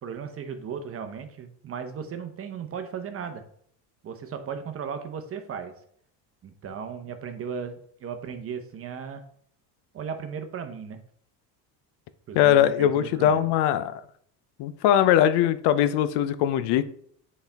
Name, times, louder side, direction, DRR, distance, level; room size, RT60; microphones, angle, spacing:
voice 1, 0.0-3.4 4.0-5.7 6.4-9.2 9.9-11.0 12.3-13.5, right 6 dB, 35° right, 8 dB, 0.8 m, -36 dB
voice 2, 12.3-14.0 14.6-16.8, left 11 dB, 70° left, 13 dB, 0.6 m, -21 dB
8.1 x 4.2 x 3.4 m, 0.64 s
cardioid pair, 140°, 41 cm